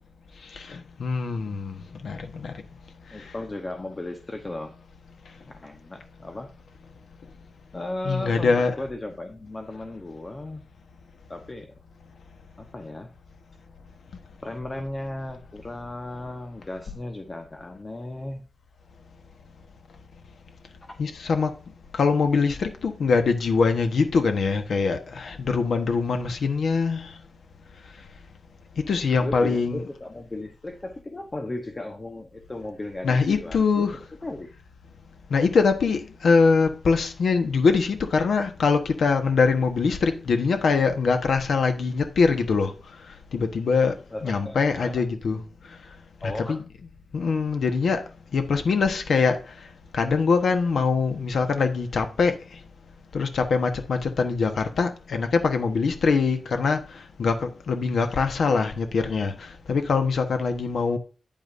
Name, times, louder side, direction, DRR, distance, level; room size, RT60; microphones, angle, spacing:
voice 1, 0.5-1.8 2.0-2.5 8.0-8.7 21.0-21.5 21.9-27.1 28.8-29.9 33.0-34.0 35.3-42.7 43.3-43.9 44.2-45.4 46.2-46.6 47.1-48.0 48.3-49.4 49.9-52.3 53.1-61.0, left 4 dB, 85° left, 1.2 m, -23 dB
voice 2, 3.1-4.7 5.5-6.5 7.7-10.6 11.3-11.8 12.6-13.1 14.4-18.4 29.2-33.9 34.2-34.5 44.1-45.0 46.2-46.6, left 2 dB, 25° left, 1.0 m, -36 dB
9.4 x 8.7 x 2.6 m
wide cardioid pair, 155°, 0 cm